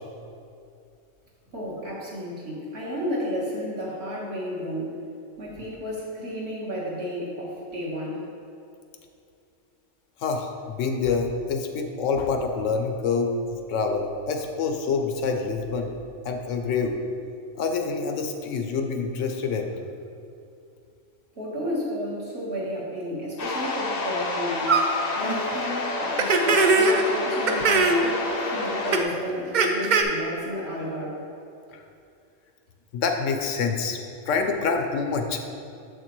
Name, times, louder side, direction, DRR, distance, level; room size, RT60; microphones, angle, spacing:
voice 1, 1.5-5.0 5.4-8.2 21.3-24.8 25.2-31.2, equal, 55° right, -5 dB, 1.7 m, -32 dB
voice 2, 10.2-15.9 16.2-17.0 17.6-19.7 31.7-31.8 32.9-34.0 34.3-35.4, left 4 dB, 75° left, 4 dB, 0.9 m, -26 dB
sound 1, 23.4-29.0, left 3 dB, 50° left, 0.5 m, -29 dB
sound 2, 24.7-24.8 25.2-25.4 26.2-27.0 27.5-28.0 28.9-29.0 29.5-30.0, right 4 dB, 70° right, 0.4 m, -20 dB
7.2 x 6.4 x 3.0 m, 2.5 s
omnidirectional pair, 1.4 m